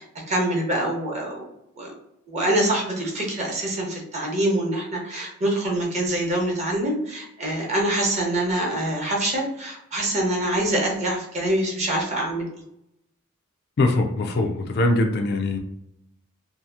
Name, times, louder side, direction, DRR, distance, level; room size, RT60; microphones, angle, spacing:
voice 1, 0.0-1.4 1.8-1.9 2.3-12.4, right 1 dB, 35° right, -1 dB, 0.8 m, -25 dB
voice 2, 13.8-15.6, left 2 dB, 50° left, 4 dB, 0.4 m, -22 dB
2.7 x 2.4 x 2.4 m, 0.80 s
head